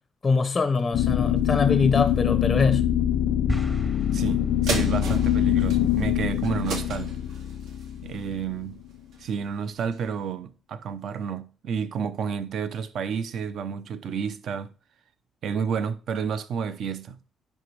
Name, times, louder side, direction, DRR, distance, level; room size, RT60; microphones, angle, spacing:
voice 1, 0.2-2.8, left 4 dB, 25° left, 0.5 m, -23 dB
sound 1, 0.9-8.9, left 10 dB, 80° left, 0.4 m, -24 dB
sound 2, 3.5-5.1, right 1 dB, 10° right, 0.8 m, -34 dB
voice 2, 4.1-7.2 8.0-8.8 9.2-14.7 15.4-17.2, right 6 dB, 60° right, 0.7 m, -30 dB
sound 3, 4.7-9.4 9.9-10.0, right 4 dB, 80° right, 2.0 m, -36 dB
10.0 x 3.4 x 3.2 m
cardioid pair, 120°, 0 cm